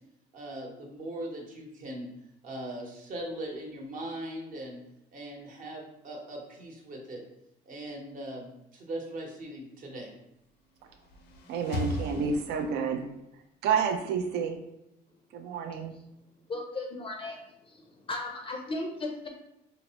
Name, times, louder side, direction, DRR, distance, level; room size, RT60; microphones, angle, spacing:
voice 1, 0.3-2.1 2.4-4.8 5.1-7.2 7.7-10.1, right 1 dB, 50° right, 0 dB, 0.9 m, -40 dB
sound 1, 10.7-13.1, left 1 dB, 80° left, 0.5 m, -37 dB
voice 2, 11.5-13.0 13.6-14.6 15.3-15.9, right 6 dB, 75° right, 5 dB, 0.5 m, -29 dB
voice 3, 16.5-17.4 17.7-19.3, left 2 dB, 30° left, 2 dB, 0.4 m, -36 dB
4.4 x 2.0 x 2.8 m, 0.84 s
cardioid pair, 110°, 17 cm